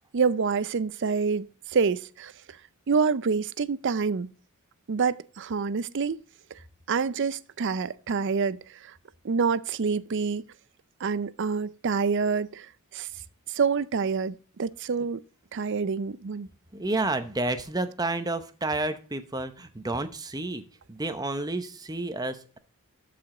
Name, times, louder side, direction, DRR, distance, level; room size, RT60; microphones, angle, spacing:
voice 1, 0.1-2.3 2.9-4.3 4.9-6.2 6.9-8.6 9.2-10.4 11.0-12.7 12.9-13.1 13.5-15.2 15.5-16.5, right 5 dB, 55° right, 0.5 m, -27 dB
voice 2, 16.7-20.6 20.9-22.6, right 2 dB, 15° right, 0.8 m, -30 dB
13.0 x 5.1 x 3.8 m
head